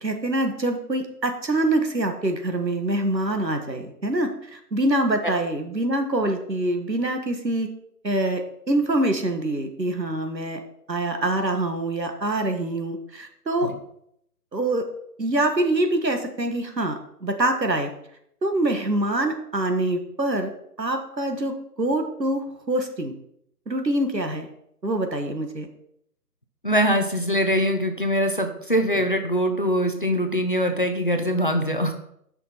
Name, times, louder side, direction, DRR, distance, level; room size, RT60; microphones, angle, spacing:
voice 1, 0.0-7.7 8.0-10.6 10.9-13.7 14.5-14.9 15.2-17.9 18.4-20.5 20.8-23.1 23.7-24.5 24.8-25.7, right 1 dB, 85° right, 6 dB, 1.6 m, -25 dB
voice 2, 26.6-31.9, equal, 30° left, 5 dB, 0.7 m, -23 dB
10.5 x 5.9 x 4.2 m, 0.73 s
figure-of-eight pair, 150°, 49 cm